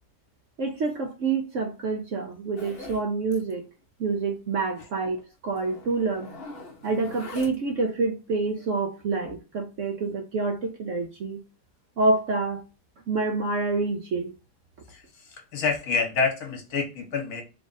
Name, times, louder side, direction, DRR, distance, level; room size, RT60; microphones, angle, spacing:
voice 1, 0.6-3.6 4.0-6.3 6.8-11.4 12.0-12.6 13.1-14.3, right 3 dB, 65° right, 0.8 m, -27 dB
Zipper (clothing), 2.6-3.1 3.3-3.5 3.8-3.9 4.3-4.4 5.1-5.2 5.5-7.8, left 2 dB, 45° left, 0.8 m, -43 dB
voice 2, 15.5-17.4, left 5 dB, 60° left, 1.4 m, -27 dB
3.6 x 2.4 x 3.9 m
omnidirectional pair, 1.9 m